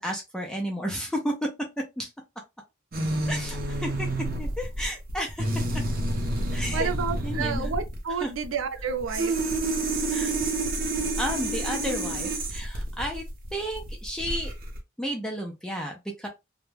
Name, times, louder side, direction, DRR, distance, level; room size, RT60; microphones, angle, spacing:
voice 1, 0.0-1.3 2.0-2.1 3.3-4.1 4.4-5.5 6.5-6.9 7.2-7.7 8.2-8.3 10.1-10.4 11.2-13.2 13.5-14.5 15.0-16.3, equal, 5° left, 0.4 m, -32 dB
sound 1, 2.9-14.8, right 2 dB, 45° right, 0.6 m, -29 dB
voice 2, 6.7-9.3, right 6 dB, 80° right, 0.4 m, -30 dB
2.3 x 2.1 x 3.2 m
head